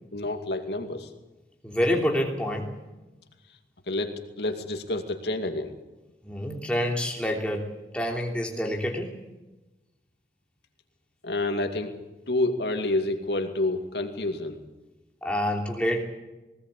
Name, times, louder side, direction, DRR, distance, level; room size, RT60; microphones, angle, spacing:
voice 1, 0.1-1.1 3.9-5.7 11.2-11.9 12.3-14.6, left 2 dB, 70° left, 5 dB, 2.4 m, -28 dB
voice 2, 1.6-2.7 6.2-7.6 7.9-9.1 15.2-16.1, equal, 5° left, 0 dB, 3.1 m, -27 dB
19.5 x 19.0 x 8.5 m, 1.1 s
head